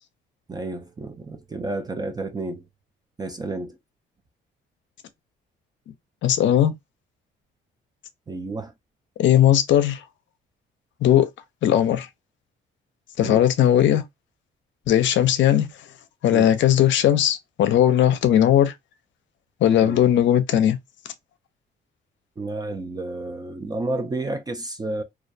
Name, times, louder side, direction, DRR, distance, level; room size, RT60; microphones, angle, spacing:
voice 1, 0.5-2.6 3.2-3.7 8.3-8.7 13.2-13.4 16.3-16.5 19.8-20.0 22.4-25.0, right 2 dB, 20° right, 0.4 m, -31 dB
voice 2, 6.2-6.8 9.2-10.0 11.0-11.3 11.6-12.1 13.2-14.0 14.9-15.7 16.2-18.7 19.6-20.8, left 11 dB, 70° left, 0.5 m, -18 dB
2.3 x 2.1 x 2.6 m
cardioid pair, 90°, 20 cm